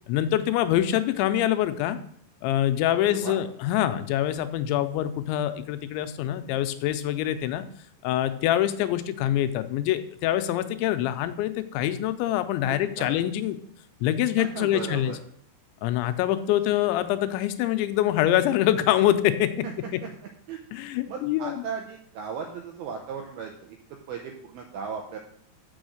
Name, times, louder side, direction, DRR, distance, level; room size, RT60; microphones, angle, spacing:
voice 1, 0.1-2.0 2.4-7.6 8.0-13.6 14.0-15.2 15.8-19.5 20.7-21.6, left 12 dB, 85° left, 10 dB, 2.9 m, -25 dB
voice 2, 3.1-3.4 12.7-13.1 14.4-15.2 19.6-19.7 20.0-20.1 20.5-20.6 21.1-23.8 24.1-25.2, right 6 dB, 85° right, 2 dB, 2.2 m, -36 dB
6.2 x 6.2 x 6.4 m, 0.62 s
omnidirectional pair, 5.3 m